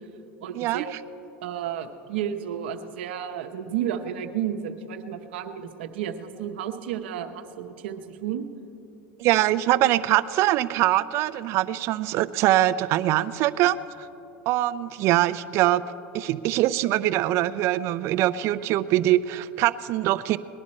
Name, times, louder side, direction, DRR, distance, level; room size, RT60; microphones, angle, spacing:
voice 1, 0.4-0.9 1.4-8.4, right 9 dB, 85° right, 5 dB, 0.9 m, -32 dB
voice 2, 9.2-13.8 14.5-15.8 16.1-20.4, right 15 dB, 55° right, 14 dB, 0.4 m, -23 dB
19.5 x 11.0 x 4.3 m, 2.9 s
supercardioid pair, 115°, 6 cm